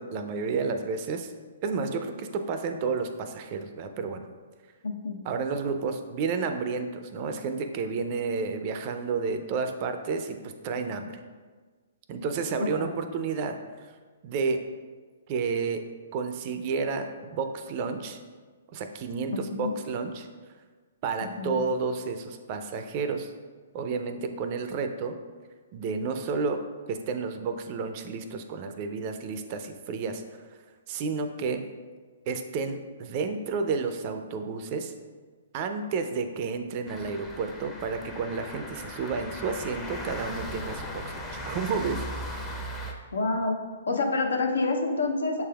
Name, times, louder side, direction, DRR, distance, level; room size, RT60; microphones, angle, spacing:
voice 1, 0.0-1.3 1.6-4.3 5.2-11.1 12.1-13.6 14.2-14.6 15.3-15.8 16.1-18.2 18.7-20.3 21.0-23.3 23.7-25.2 25.7-30.2 30.9-31.6 32.3-34.9 35.5-42.0 42.3-42.5, right 4 dB, 40° right, 7 dB, 0.4 m, -31 dB
voice 2, 4.8-5.3 12.6-12.9 19.3-19.7 21.4-21.6 43.1-43.6 43.9-45.4, left 3 dB, 80° left, 3 dB, 0.6 m, -28 dB
sound 1, 36.9-42.9, equal, 10° left, 0.5 m, -38 dB
6.7 x 3.4 x 2.3 m, 1.4 s
hypercardioid pair, 130°, 0 cm